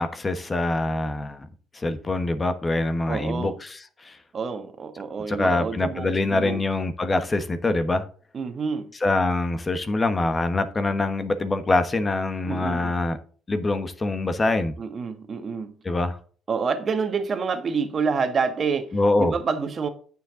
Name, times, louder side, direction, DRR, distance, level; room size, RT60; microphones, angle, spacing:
voice 1, 0.0-1.5 1.7-4.2 5.3-8.0 9.0-13.2 13.5-14.7 15.8-16.2 18.9-19.3, left 2 dB, 25° left, 1.2 m, -24 dB
voice 2, 3.1-3.6 4.3-6.6 8.3-8.9 12.4-12.9 14.8-15.7 16.5-19.9, right 5 dB, 40° right, 1.5 m, -28 dB
9.3 x 6.9 x 3.8 m
cardioid pair, 95°, 0 cm